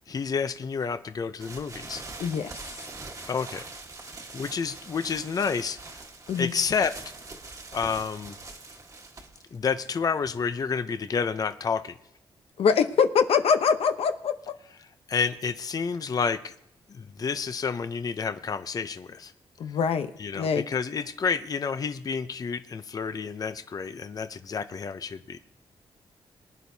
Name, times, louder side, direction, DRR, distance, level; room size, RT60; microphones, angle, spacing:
voice 1, 0.1-2.0 3.3-3.7 4.3-5.8 6.4-6.9 7.7-8.4 9.5-11.9 15.1-16.5 16.9-19.3 20.2-25.4, left 5 dB, 40° left, 10 dB, 0.6 m, -29 dB
sound 1, 1.4-11.0, right 3 dB, 35° right, 1.4 m, -43 dB
voice 2, 2.2-2.6 6.3-6.5 12.6-14.5 19.6-20.7, left 6 dB, 85° left, 8 dB, 0.8 m, -24 dB
23.0 x 10.5 x 2.8 m, 0.75 s
wide cardioid pair, 125°, 10 cm